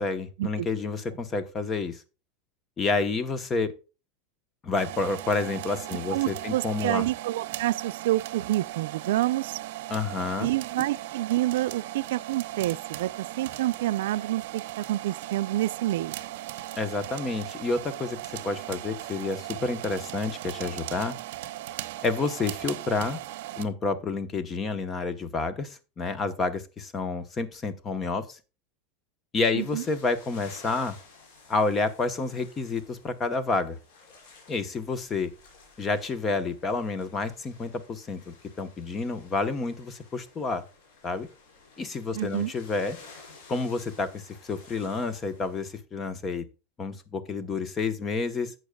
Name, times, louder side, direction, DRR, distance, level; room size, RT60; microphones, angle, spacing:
voice 1, 0.0-2.0 2.8-3.7 4.6-7.0 9.9-10.5 16.8-18.2 18.4-21.1 22.0-23.2 23.6-28.4 29.3-31.0 31.5-33.8 34.5-35.3 35.8-40.6 41.0-41.3 41.8-43.0 43.5-46.4 46.8-48.5, left 3 dB, 20° left, 0.9 m, -29 dB
sound 1, 4.8-23.6, right 15 dB, 65° right, 0.8 m, -38 dB
voice 2, 6.1-9.6 10.4-16.2 29.5-29.8 42.1-42.5, right 15 dB, 85° right, 0.4 m, -28 dB
sound 2, 29.6-45.8, left 4 dB, 70° left, 5.1 m, -53 dB
11.5 x 7.8 x 2.3 m
supercardioid pair, 165°, 0 cm